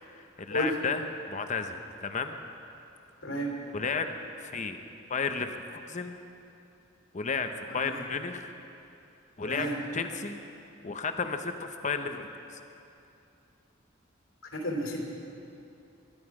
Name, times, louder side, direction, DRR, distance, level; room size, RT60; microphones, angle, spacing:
voice 1, 0.0-2.4 3.7-4.8 5.1-6.2 7.1-8.5 9.4-9.7 9.9-10.4 10.8-12.6, left 5 dB, 35° left, 7 dB, 0.8 m, -33 dB
voice 2, 3.2-3.5 7.7-7.9 9.4-9.8 14.5-15.0, equal, 75° left, -1 dB, 3.1 m, -32 dB
22.5 x 11.0 x 4.9 m, 2.7 s
head